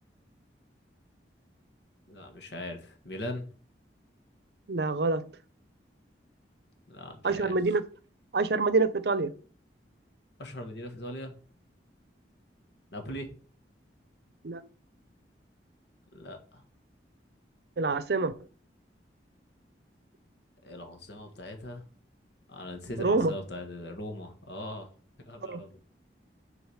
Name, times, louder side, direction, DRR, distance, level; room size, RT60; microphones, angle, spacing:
voice 1, 2.1-3.5 6.9-7.5 10.4-11.3 12.9-13.3 16.1-16.6 20.6-21.8 22.5-24.9 25.3-25.8, left 1 dB, 75° left, 1.6 m, -40 dB
voice 2, 4.7-5.2 7.2-7.9 8.3-9.3 14.4-14.6 17.8-18.3 23.0-23.3 25.5-25.6, right 3 dB, 60° right, 0.6 m, -26 dB
6.3 x 3.9 x 6.3 m
head